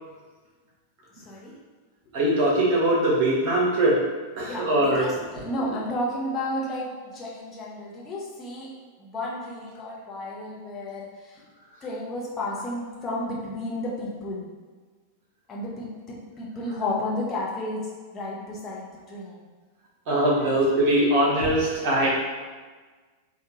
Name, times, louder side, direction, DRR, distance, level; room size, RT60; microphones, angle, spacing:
voice 1, 1.1-1.5 4.4-8.7 9.0-11.4 11.8-14.5 15.5-19.5 20.4-20.6, left 1 dB, 25° left, -5 dB, 1.1 m, -32 dB
voice 2, 2.1-4.0 4.4-5.1 20.1-22.1, right 1 dB, 45° right, -4 dB, 1.3 m, -21 dB
3.7 x 2.6 x 4.0 m, 1.4 s
figure-of-eight pair, 90°, 0 cm